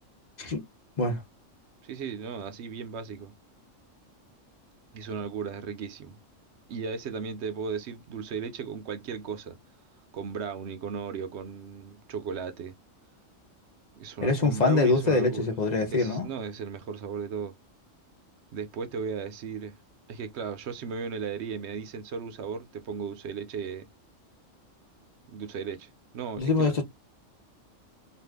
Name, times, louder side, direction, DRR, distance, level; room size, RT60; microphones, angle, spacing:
voice 1, 1.8-3.3 4.9-6.2 6.7-9.6 10.1-12.7 14.0-15.5 15.9-17.6 18.5-19.8 20.1-23.9 25.3-26.7, right 6 dB, 65° right, 0.8 m, -36 dB
voice 2, 14.2-16.3 26.4-26.8, left 3 dB, 40° left, 0.8 m, -24 dB
2.6 x 2.5 x 3.4 m
omnidirectional pair, 1.3 m